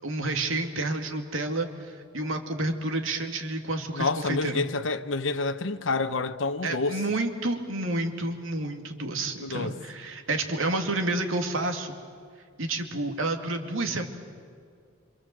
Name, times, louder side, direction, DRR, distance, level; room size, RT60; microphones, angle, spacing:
voice 1, 0.0-4.6 6.6-12.0 12.6-14.1, right 2 dB, 85° right, 2.6 m, -30 dB
voice 2, 3.9-7.0 9.4-9.7, left 3 dB, 70° left, 0.9 m, -28 dB
26.5 x 26.0 x 7.8 m
head